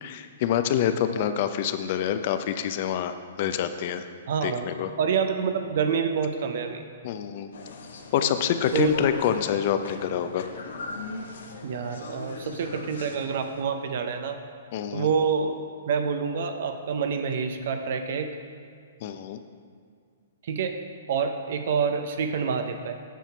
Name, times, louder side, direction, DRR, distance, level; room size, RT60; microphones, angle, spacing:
voice 1, 0.0-4.1 4.4-4.9 7.0-7.5 8.1-10.5 14.7-15.1 19.0-19.4, left 9 dB, 50° left, 9 dB, 0.5 m, -26 dB
voice 2, 4.3-4.7 5.0-6.8 8.7-8.9 11.6-14.4 14.9-15.5 15.9-18.3 20.4-20.8 21.1-23.0, right 6 dB, 60° right, 7 dB, 0.6 m, -27 dB
sound 1, 7.5-13.6, left 4 dB, 75° left, 1.0 m, -40 dB
8.3 x 5.8 x 4.5 m, 2.1 s
hypercardioid pair, 135°, 0 cm